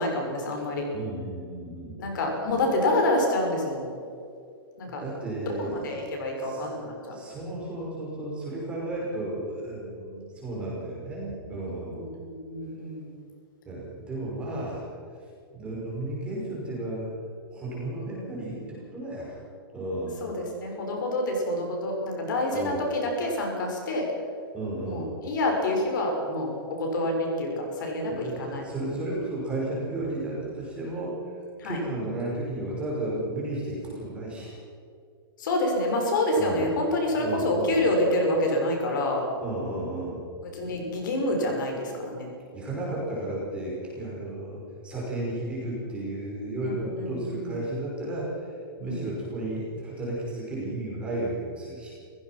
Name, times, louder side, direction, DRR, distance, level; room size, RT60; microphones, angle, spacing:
voice 1, 0.0-0.8 2.0-3.9 4.8-5.0 5.4-7.1 11.9-13.1 14.3-14.6 20.2-24.1 24.8-26.5 26.8-28.6 31.6-31.8 35.4-39.2 40.4-42.3 47.0-47.5 48.8-49.1, left 1 dB, 55° left, 1 dB, 6.3 m, -27 dB
voice 2, 0.9-2.0 5.0-6.0 6.4-6.7 7.1-12.1 13.7-14.9 15.5-17.1 17.5-19.4 19.7-20.2 22.5-22.8 24.5-25.1 28.1-31.2 31.6-34.6 36.4-36.7 37.2-37.8 39.4-40.2 42.5-48.5 48.8-51.9, right 1 dB, 10° right, -5 dB, 5.5 m, -33 dB
28.5 x 16.5 x 6.1 m, 2.4 s
hypercardioid pair, 175°, 13 cm